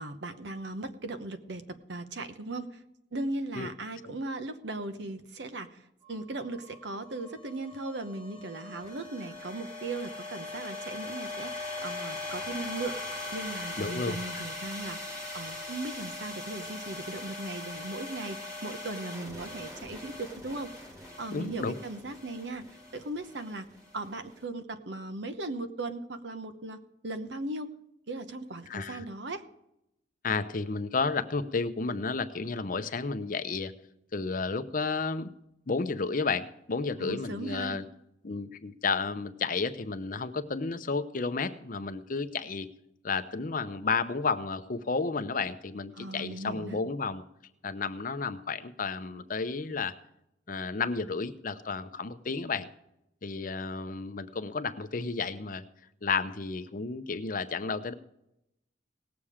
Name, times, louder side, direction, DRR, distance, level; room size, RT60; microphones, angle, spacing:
voice 1, 0.0-2.7 3.1-5.8 6.1-20.7 21.2-22.6 22.9-27.7 28.1-29.4 37.0-37.8 45.9-46.8, right 2 dB, 65° right, 9 dB, 0.9 m, -38 dB
sound 1, 6.0-24.3, left 2 dB, 20° right, 2.3 m, -41 dB
voice 2, 13.8-14.4 21.3-21.8 28.7-29.0 30.2-33.7 34.1-35.3 35.7-37.8 38.2-42.7 43.0-47.2 47.6-49.9 50.5-52.7 53.2-55.6 56.0-57.9, left 4 dB, 45° left, 10 dB, 0.7 m, -32 dB
18.0 x 7.3 x 4.9 m, 0.82 s
head